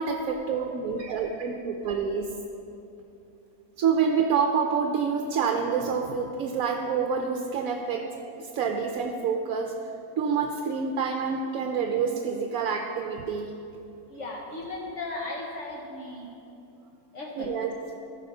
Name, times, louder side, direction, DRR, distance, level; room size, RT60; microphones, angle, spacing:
voice 1, 0.0-2.3 3.8-8.1 8.4-9.7 10.2-13.5 17.4-17.7, right 6 dB, 70° right, 3 dB, 1.0 m, -27 dB
voice 2, 14.1-16.3 17.1-17.5, left 2 dB, 55° left, -2 dB, 1.2 m, -36 dB
14.0 x 4.9 x 5.5 m, 2.7 s
omnidirectional pair, 1.6 m